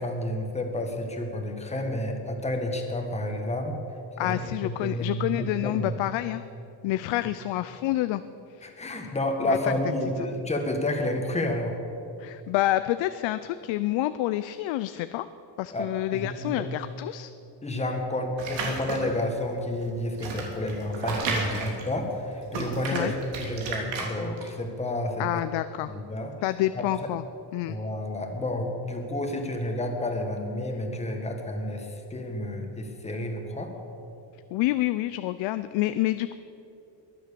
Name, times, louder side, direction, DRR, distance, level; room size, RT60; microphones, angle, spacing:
voice 1, 0.0-3.8 4.2-5.9 8.6-11.8 15.7-16.7 17.6-25.4 25.9-26.3 26.8-26.9 27.7-33.7, left 1 dB, 15° left, 3 dB, 1.7 m, -30 dB
voice 2, 4.2-6.4 6.8-8.2 8.5-8.7 9.5-9.6 12.2-15.3 15.6-17.3 22.9-23.1 25.2-25.9 26.4-27.2 27.5-27.8 34.5-36.4, left 15 dB, 85° left, 13 dB, 0.6 m, -28 dB
sound 1, 18.4-19.2 19.8-22.2 22.5-24.5, right 4 dB, 90° right, 3.1 m, -32 dB
22.5 x 7.8 x 6.8 m, 2.7 s
cardioid pair, 140°, 44 cm